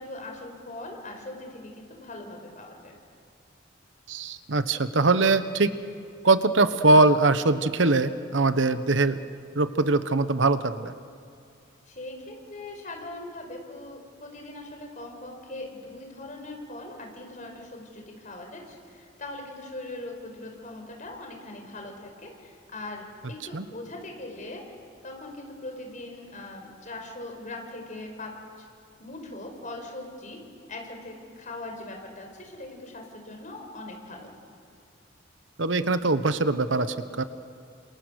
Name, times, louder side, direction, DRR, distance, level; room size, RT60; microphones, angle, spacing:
voice 1, 0.0-3.0 11.9-24.6 25.0-28.3 29.0-30.4 30.7-34.3, left 2 dB, 40° left, 3 dB, 4.8 m, -40 dB
voice 2, 4.1-5.7 6.2-9.2 9.5-10.9 23.5-23.6 35.6-37.2, right 3 dB, 75° right, 11 dB, 1.1 m, -22 dB
29.5 x 27.5 x 6.5 m, 2.3 s
head